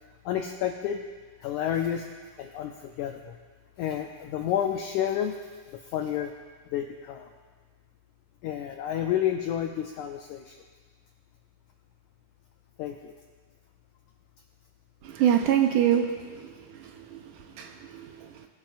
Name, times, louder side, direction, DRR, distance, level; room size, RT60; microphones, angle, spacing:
voice 1, 0.2-1.0 1.4-2.1 2.4-3.4 3.8-6.3 6.7-7.3 8.4-10.6 12.8-13.1, left 10 dB, 85° left, 4 dB, 1.7 m, -30 dB
voice 2, 15.0-16.1 16.4-16.5 16.8-17.2 17.6-18.2, right 10 dB, 75° right, 4 dB, 2.2 m, -25 dB
22.5 x 11.5 x 2.6 m, 1.5 s
omnidirectional pair, 4.2 m